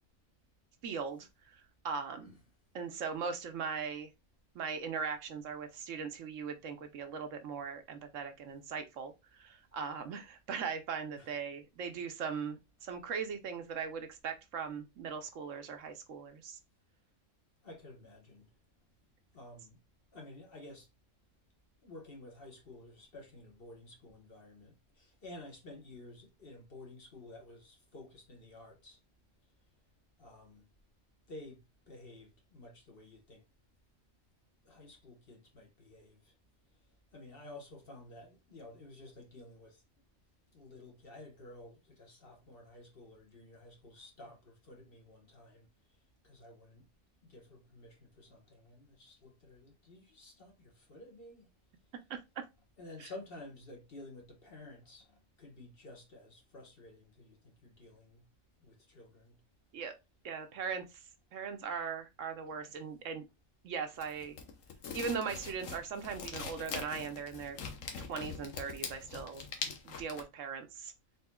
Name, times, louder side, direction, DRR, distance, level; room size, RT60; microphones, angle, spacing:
voice 1, 0.8-2.3 2.7-4.1 4.5-16.6 52.1-52.4 53.0-53.1 59.7-59.9 60.2-61.0 61.3-63.3 63.6-64.4 64.9-67.6 68.0-69.4 69.8-70.9, right 6 dB, 70° right, 1.0 m, -39 dB
voice 2, 17.6-18.5 19.3-19.8 20.1-20.9 21.8-29.0 30.2-30.7 31.3-31.6 31.9-33.4 34.6-36.3 37.1-39.8 40.5-45.7 46.2-46.9 47.2-51.5 52.8-58.2 58.6-59.4 62.5-62.7, left 2 dB, 45° left, 1.4 m, -52 dB
sound 1, 64.0-70.2, left 5 dB, 75° left, 1.2 m, -43 dB
4.2 x 4.1 x 2.2 m
omnidirectional pair, 1.4 m